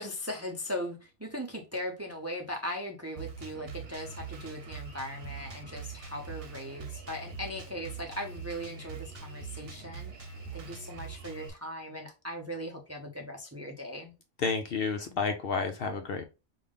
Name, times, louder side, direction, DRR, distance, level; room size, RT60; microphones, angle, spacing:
voice 1, 0.0-10.1 10.5-14.1, equal, 15° right, 0.5 m, -39 dB
Drum kit, 3.2-11.5, right 5 dB, 55° right, 1.0 m, -43 dB
voice 2, 14.4-16.2, left 4 dB, 60° left, 0.7 m, -30 dB
5.1 x 2.4 x 3.6 m
omnidirectional pair, 1.3 m